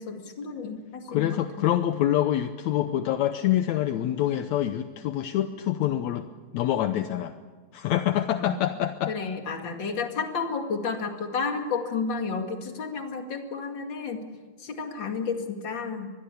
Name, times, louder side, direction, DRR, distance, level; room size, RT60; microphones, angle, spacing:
voice 1, 0.0-1.7 8.4-8.6 9.1-14.2 14.6-16.1, left 5 dB, 40° left, 4 dB, 2.7 m, -31 dB
voice 2, 1.1-6.3 6.5-7.3 7.7-9.1, left 12 dB, 75° left, 9 dB, 2.0 m, -26 dB
24.5 x 21.0 x 7.0 m, 1.4 s
omnidirectional pair, 3.4 m